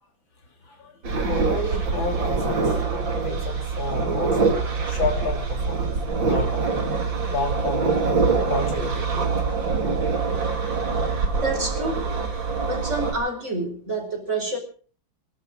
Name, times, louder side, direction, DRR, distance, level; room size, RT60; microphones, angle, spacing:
voice 1, 0.6-4.4 4.9-5.9 6.2-6.8 7.3-7.9 8.5-9.3, left 2 dB, 75° left, 4 dB, 3.6 m, -31 dB
sound 1, 1.0-13.1, right 4 dB, 75° right, 3.5 m, -24 dB
voice 2, 11.4-12.1 12.7-14.6, right 2 dB, 35° right, 3 dB, 5.2 m, -28 dB
23.5 x 12.0 x 5.0 m, 0.42 s
omnidirectional pair, 2.1 m